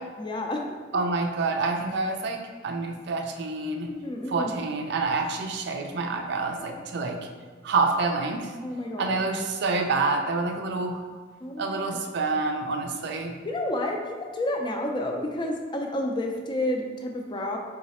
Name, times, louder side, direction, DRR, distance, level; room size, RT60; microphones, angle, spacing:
voice 1, 0.2-0.7 3.9-4.5 8.6-9.2 11.4-12.0 13.4-17.6, left 1 dB, 25° left, 2 dB, 0.4 m, -30 dB
voice 2, 0.9-2.4 2.6-3.9 4.3-7.2 7.6-8.5 9.0-11.0 11.6-13.3, right 3 dB, 60° right, 4 dB, 0.4 m, -27 dB
4.1 x 2.4 x 4.1 m, 1.5 s
head